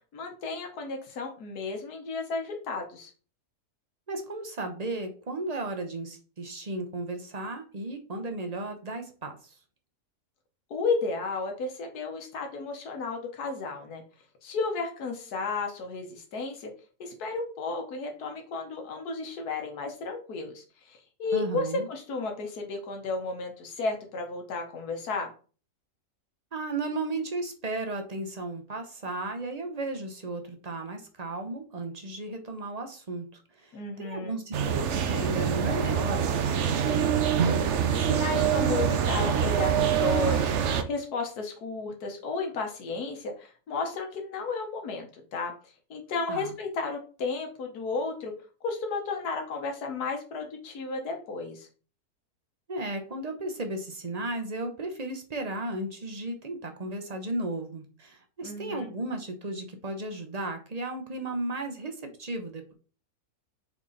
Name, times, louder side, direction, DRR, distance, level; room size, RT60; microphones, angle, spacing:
voice 1, 0.1-3.1 10.7-14.0 14.4-16.7 17.0-25.3 33.7-34.4 37.9-45.5 45.9-48.3 48.6-51.7 58.4-58.9, left 3 dB, 75° left, 3 dB, 1.7 m, -33 dB
voice 2, 4.1-9.6 21.3-21.9 26.5-34.6 35.0-37.1 46.3-46.5 52.7-62.7, right 2 dB, 30° right, 6 dB, 0.9 m, -35 dB
sound 1, 34.5-40.8, right 8 dB, 60° right, 0.8 m, -25 dB
5.9 x 4.3 x 4.0 m, 0.37 s
omnidirectional pair, 1.7 m